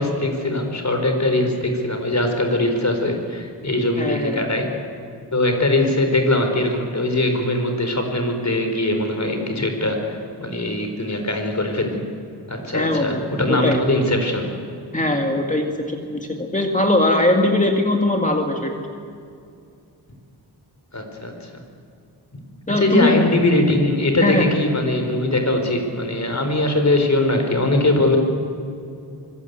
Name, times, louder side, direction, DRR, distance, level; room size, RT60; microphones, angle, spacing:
voice 1, 0.0-4.7 5.3-12.0 12.5-14.5 20.9-21.3 22.3-22.4 22.8-28.2, left 1 dB, 40° left, 4 dB, 4.6 m, -21 dB
voice 2, 4.0-4.6 12.7-13.2 13.5-13.8 14.9-18.7 22.7-23.2 24.2-24.6, left 1 dB, 15° left, 2 dB, 2.1 m, -20 dB
26.0 x 21.0 x 8.3 m, 2.5 s
wide cardioid pair, 105°, 43 cm